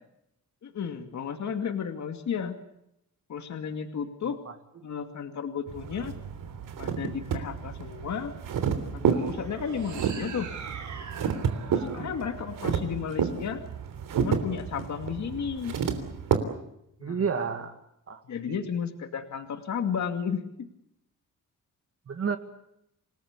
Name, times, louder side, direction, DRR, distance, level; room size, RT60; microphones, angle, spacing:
voice 1, 0.6-2.6 3.3-4.4 4.8-6.1 6.8-8.3 8.9-10.5 11.1-11.2 11.6-13.6 14.2-15.7 17.0-17.2 18.2-20.7, left 7 dB, 55° left, 7 dB, 2.4 m, -33 dB
sound 1, 5.7-16.4, right 7 dB, 80° right, 3.3 m, -31 dB
sound 2, 9.0-13.3, right 6 dB, 60° right, 4.7 m, -43 dB
voice 2, 17.0-17.8 18.1-18.2 18.5-18.6 22.1-22.4, right 6 dB, 45° right, 8 dB, 2.1 m, -31 dB
28.5 x 19.5 x 8.3 m, 0.80 s
wide cardioid pair, 140°, 33 cm